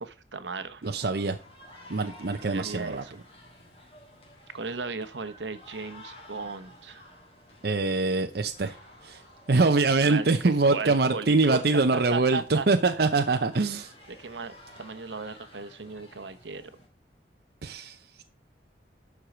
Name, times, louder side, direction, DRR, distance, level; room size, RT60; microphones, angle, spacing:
voice 1, 0.0-0.9 2.4-3.2 4.5-7.0 10.0-13.1 14.1-16.7, right 4 dB, 80° right, 1.0 m, -36 dB
sound 1, 0.8-16.9, left 1 dB, 35° left, 3.0 m, -52 dB
voice 2, 0.8-1.4 1.9-3.0 7.6-8.8 9.0-9.2 9.5-13.9 17.6-18.2, right 3 dB, 60° right, 0.7 m, -24 dB
11.5 x 4.8 x 6.0 m
head